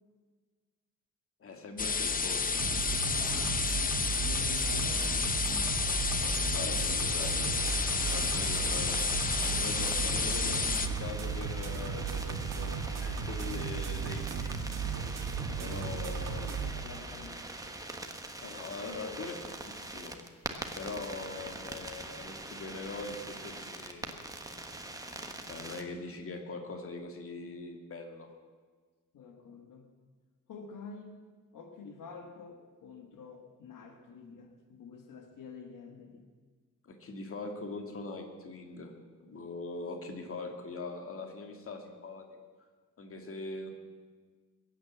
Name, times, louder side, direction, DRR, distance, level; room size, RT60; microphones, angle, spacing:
voice 1, 1.4-2.7 5.8-7.5 8.1-9.0 9.4-15.1 15.6-16.4 18.4-20.2 20.8-24.3 25.5-28.3 36.8-38.9 39.2-42.3 43.0-43.7, left 3 dB, 45° left, 4 dB, 2.1 m, -42 dB
sound 1, 1.8-10.9, left 5 dB, 25° left, 0.8 m, -30 dB
sound 2, 2.6-16.7, right 6 dB, 85° right, 1.7 m, -35 dB
voice 2, 2.9-6.0 7.9-8.3 16.3-17.4 29.1-29.9 30.5-31.2 31.5-36.2, left 4 dB, 85° left, 5 dB, 1.6 m, -48 dB
sound 3, 7.5-25.8, right 2 dB, 10° right, 1.3 m, -43 dB
21.5 x 9.3 x 7.3 m, 1.5 s
wide cardioid pair, 145°, 31 cm